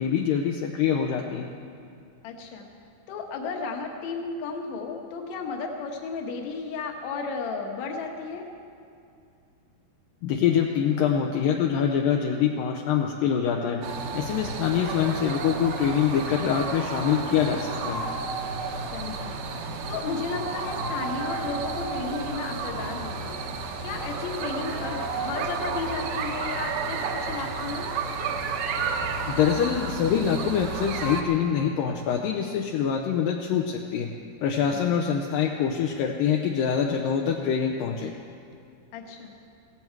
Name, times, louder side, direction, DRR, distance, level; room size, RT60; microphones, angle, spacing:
voice 1, 0.0-1.5 10.2-13.8 14.1-18.0 29.3-34.1 34.4-38.1, left 8 dB, 80° left, 2 dB, 2.0 m, -25 dB
voice 2, 2.2-2.7 3.1-8.5 18.9-23.5 23.8-27.9 38.9-39.3, left 4 dB, 60° left, 2 dB, 2.0 m, -34 dB
sound 1, 13.8-31.2, right 4 dB, 70° right, 2.1 m, -32 dB
16.5 x 16.0 x 4.6 m, 2.5 s
omnidirectional pair, 4.9 m